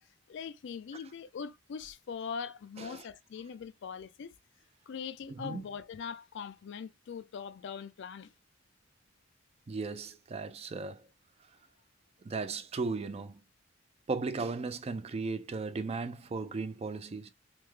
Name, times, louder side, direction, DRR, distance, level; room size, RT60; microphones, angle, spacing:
voice 1, 0.3-4.3 4.9-8.3, left 6 dB, 65° left, 0.4 m, -41 dB
voice 2, 9.7-11.1 12.2-13.4 14.1-17.3, right 4 dB, 30° right, 0.4 m, -36 dB
3.4 x 2.1 x 3.1 m
head